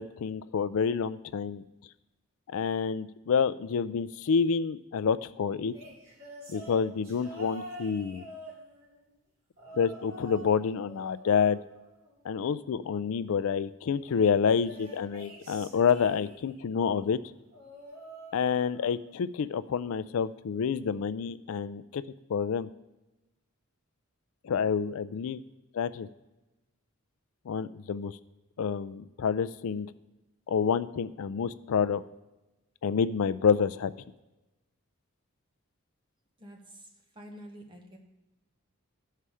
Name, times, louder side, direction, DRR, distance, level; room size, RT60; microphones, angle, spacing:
voice 1, 0.0-1.6 2.5-5.7 6.5-8.3 9.7-11.6 12.2-17.2 18.3-22.0 22.3-22.7 24.4-25.4 25.7-26.1 27.5-28.2 28.6-29.9 30.5-32.0 32.8-33.9, left 6 dB, 70° left, 14 dB, 0.3 m, -28 dB
sound 1, 5.7-9.0 9.6-10.6 10.8-12.4 14.4-16.6 17.5-19.0 19.3-19.7 20.8-20.9, right 1 dB, 60° right, 2.2 m, -47 dB
voice 2, 36.4-38.0, equal, 20° right, 2 dB, 1.0 m, -48 dB
11.5 x 5.7 x 4.8 m, 1.0 s
head